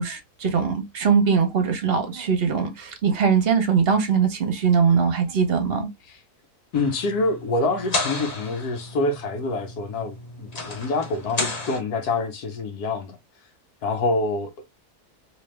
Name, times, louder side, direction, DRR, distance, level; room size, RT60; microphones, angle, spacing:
voice 1, 0.0-5.9, right 6 dB, 50° right, 0.9 m, -21 dB
voice 2, 6.7-13.2 13.8-14.6, left 3 dB, 75° left, 1.4 m, -26 dB
sound 1, 6.7-11.8, left 3 dB, 35° left, 0.8 m, -33 dB
3.3 x 2.9 x 3.2 m
omnidirectional pair, 1.7 m